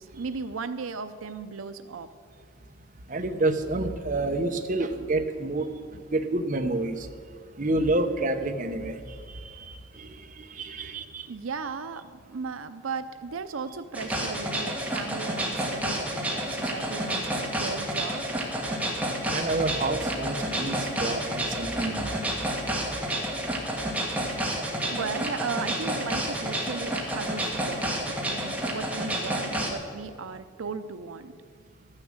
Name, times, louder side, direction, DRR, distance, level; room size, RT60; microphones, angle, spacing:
voice 1, 0.0-2.1 10.8-11.0 11.3-18.2 24.9-31.3, right 5 dB, 85° right, 10 dB, 0.6 m, -36 dB
voice 2, 3.1-5.7 6.1-7.1 7.6-11.3 19.2-22.1 24.8-25.0, right 2 dB, 40° right, 6 dB, 0.9 m, -29 dB
sound 1, 13.9-29.7, right 1 dB, 5° right, 1.7 m, -30 dB
13.0 x 9.8 x 7.3 m, 2.1 s
head